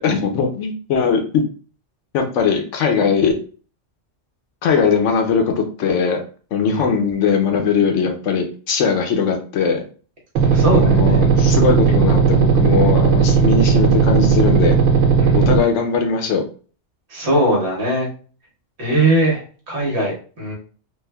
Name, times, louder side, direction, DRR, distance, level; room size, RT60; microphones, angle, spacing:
voice 1, 0.0-1.4 2.1-3.3 4.6-6.2 6.5-9.8 10.7-14.8 15.3-16.4, left 6 dB, 80° left, 3 dB, 1.0 m, -19 dB
voice 2, 10.4-11.6 15.2-15.5 17.1-18.1 18.8-20.5, right 1 dB, 60° right, -2 dB, 1.4 m, -21 dB
sound 1, 10.4-15.6, right 5 dB, 90° right, 0.9 m, -15 dB
3.4 x 2.6 x 2.2 m, 0.39 s
omnidirectional pair, 1.3 m